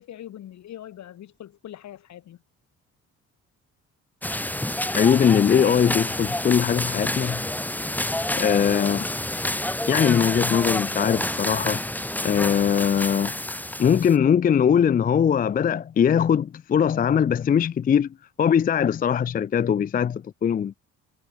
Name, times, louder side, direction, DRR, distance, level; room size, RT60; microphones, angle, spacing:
voice 1, 0.0-2.4 8.7-9.0, left 11 dB, 65° left, 1.6 m, -41 dB
sound 1, 4.2-14.2, left 1 dB, 5° left, 1.2 m, -28 dB
voice 2, 4.9-7.4 8.3-9.0 9.9-11.8 12.2-13.3 13.8-18.1 18.4-20.7, left 8 dB, 30° left, 0.4 m, -21 dB
cardioid pair, 90°, 30 cm